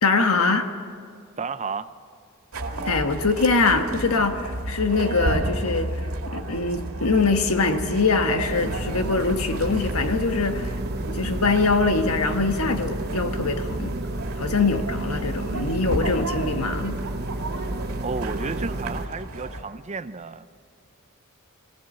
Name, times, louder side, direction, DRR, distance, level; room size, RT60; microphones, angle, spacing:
voice 1, 0.0-0.7 2.8-10.7 11.1-14.0 14.3-17.0, left 3 dB, 80° left, 1.4 m, -23 dB
voice 2, 1.4-1.9 18.0-20.5, right 4 dB, 30° right, 0.6 m, -32 dB
sound 1, 2.5-19.6, right 1 dB, 80° right, 2.2 m, -33 dB
sound 2, 8.5-19.1, right 2 dB, 45° right, 0.9 m, -31 dB
23.5 x 17.0 x 7.6 m
head